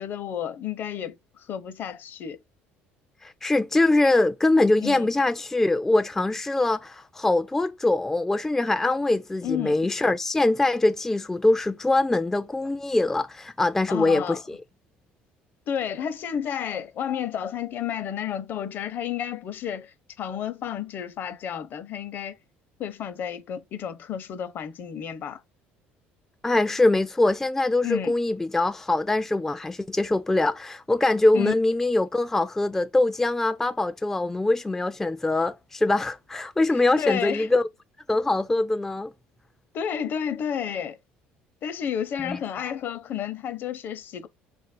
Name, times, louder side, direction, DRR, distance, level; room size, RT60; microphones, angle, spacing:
voice 1, 0.0-2.4 4.8-5.1 9.4-9.9 13.9-14.4 15.7-22.4 22.8-25.4 27.8-28.1 31.3-31.5 36.7-37.5 39.7-41.0 41.6-44.3, left 9 dB, 55° left, 0.7 m, -31 dB
voice 2, 3.2-14.6 26.4-37.7 38.1-39.1 42.2-42.4, left 2 dB, 10° left, 0.3 m, -23 dB
4.0 x 2.5 x 4.2 m
cardioid pair, 105°, 4 cm